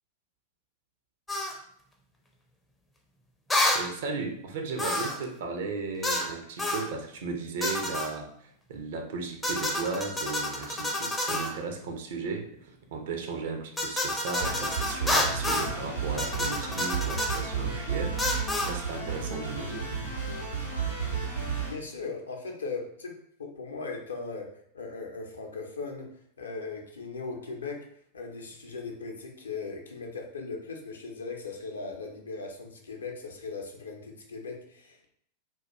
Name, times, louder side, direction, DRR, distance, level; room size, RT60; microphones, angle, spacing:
sound 1, 1.3-1.6 3.5-3.9 4.8-5.2 6.0-6.3 6.6-6.9 7.6-8.1 9.4-11.5 13.8-15.7 16.2-17.4 18.2-18.7, left 1 dB, 10° left, 0.4 m, -29 dB
voice 1, 3.7-18.2 18.6-19.9, right 4 dB, 55° right, 4 dB, 0.4 m, -35 dB
sound 2, 14.4-21.7, right 5 dB, 85° right, 0.8 m, -33 dB
voice 2, 21.7-23.1 23.4-24.5 24.7-26.1 26.4-27.8 28.1-35.1, left 4 dB, 70° left, 2 dB, 0.5 m, -38 dB
2.2 x 2.2 x 2.9 m, 0.67 s
figure-of-eight pair, 90°, 0 cm